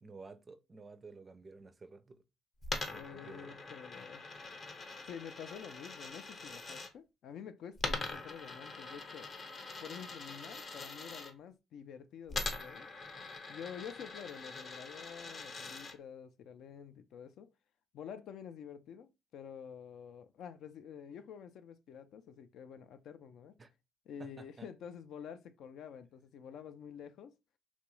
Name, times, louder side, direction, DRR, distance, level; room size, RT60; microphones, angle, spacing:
voice 1, 0.0-2.2 3.1-3.7 23.6-23.7 24.2-24.7, right 3 dB, 30° right, 0.4 m, -52 dB
Coin (dropping), 2.6-6.9 7.8-11.3 12.3-15.9, left 3 dB, 45° left, 0.7 m, -43 dB
voice 2, 2.9-4.2 5.1-9.3 9.8-12.9 13.5-17.5 17.9-23.6 24.1-27.3, left 8 dB, 75° left, 0.3 m, -48 dB
2.9 x 2.3 x 3.0 m
cardioid pair, 105°, 0 cm